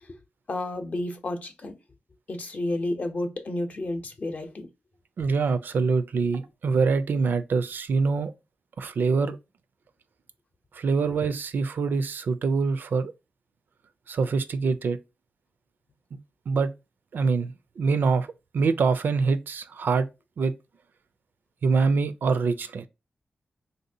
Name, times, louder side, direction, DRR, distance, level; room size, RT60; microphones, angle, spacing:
voice 1, 0.5-1.8 2.3-4.7, left 1 dB, 50° left, 0.7 m, -31 dB
voice 2, 5.2-8.3 8.8-9.4 10.7-13.1 14.1-15.0 16.5-16.7 17.1-18.3 18.5-20.1 20.4-20.5 21.6-22.9, right 4 dB, 75° right, 0.4 m, -24 dB
3.4 x 2.7 x 2.6 m
wide cardioid pair, 105°, 3 cm